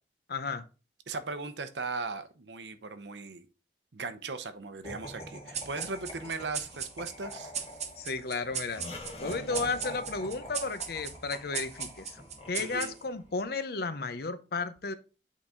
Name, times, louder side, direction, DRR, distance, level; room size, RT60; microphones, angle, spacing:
voice 1, 0.3-0.6 8.0-8.8 9.2-12.2 12.5-14.9, left 4 dB, 60° left, 12 dB, 0.7 m, -33 dB
voice 2, 1.1-3.5 3.9-7.5 12.6-12.9, right 3 dB, 85° right, 10 dB, 0.8 m, -38 dB
Laughter, 4.8-13.2, left 1 dB, 35° left, 1.8 m, -45 dB
sound 1, 5.5-13.3, right 7 dB, 40° right, 1.0 m, -39 dB
8.4 x 3.9 x 3.7 m, 0.33 s
head